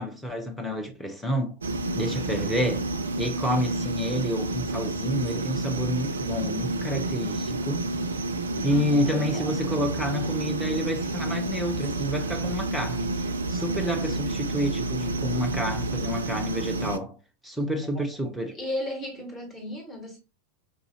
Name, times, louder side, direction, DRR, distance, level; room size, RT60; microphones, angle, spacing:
voice 1, 0.0-1.6 1.9-2.9 3.2-7.9 8.6-17.2 17.4-18.6, equal, ahead, 0.8 m, -29 dB
sound 1, 1.6-17.0, right 2 dB, 70° right, 0.3 m, -30 dB
voice 2, 8.7-9.6 10.0-10.1 18.5-20.2, left 1 dB, 15° left, 1.5 m, -35 dB
4.7 x 2.7 x 2.7 m
figure-of-eight pair, 90°, 0 cm